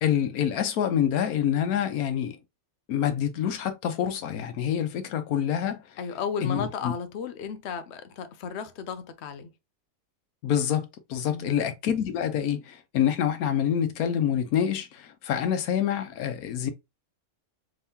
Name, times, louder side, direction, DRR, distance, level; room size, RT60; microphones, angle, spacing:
voice 1, 0.0-2.4 2.9-6.0 6.4-6.9 10.4-16.7, left 9 dB, 85° left, 1.1 m, -27 dB
voice 2, 6.0-9.5 11.3-11.8, left 6 dB, 60° left, 0.7 m, -34 dB
3.6 x 3.5 x 2.7 m
omnidirectional pair, 1.5 m